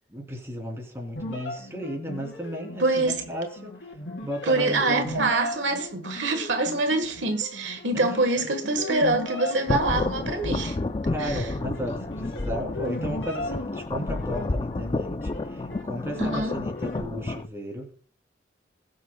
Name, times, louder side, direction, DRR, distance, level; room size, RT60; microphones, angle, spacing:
voice 1, 0.1-3.7 4.2-5.3 8.4-8.6 11.1-17.9, equal, 15° right, 3.1 m, -34 dB
sound 1, 1.2-17.0, left 1 dB, 80° left, 3.1 m, -37 dB
voice 2, 2.8-3.2 4.4-10.8 11.2-11.5 16.2-16.6, right 2 dB, 85° right, 1.4 m, -25 dB
sound 2, 9.7-17.5, left 2 dB, 25° left, 0.4 m, -30 dB
21.0 x 7.4 x 2.3 m
head